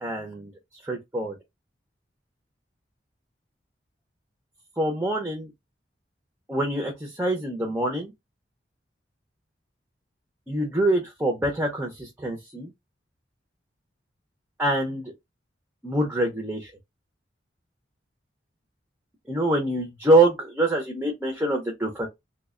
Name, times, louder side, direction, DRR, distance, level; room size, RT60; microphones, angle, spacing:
voice 1, 0.0-0.5 0.8-1.3 4.8-5.5 6.5-8.1 10.5-12.7 14.6-15.1 15.8-16.7 19.3-22.1, right 1 dB, 10° right, 0.6 m, -25 dB
3.1 x 2.1 x 3.6 m
head